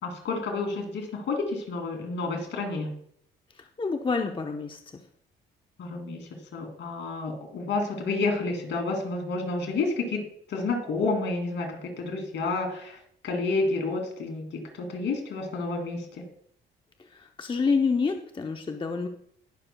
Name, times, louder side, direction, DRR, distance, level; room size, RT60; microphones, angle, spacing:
voice 1, 0.0-2.9 5.8-16.1, left 3 dB, 70° left, 2 dB, 2.8 m, -30 dB
voice 2, 3.6-5.0 17.1-19.1, left 4 dB, 25° left, 4 dB, 0.8 m, -28 dB
19.0 x 6.7 x 2.3 m, 0.65 s
cardioid pair, 90°, 20 cm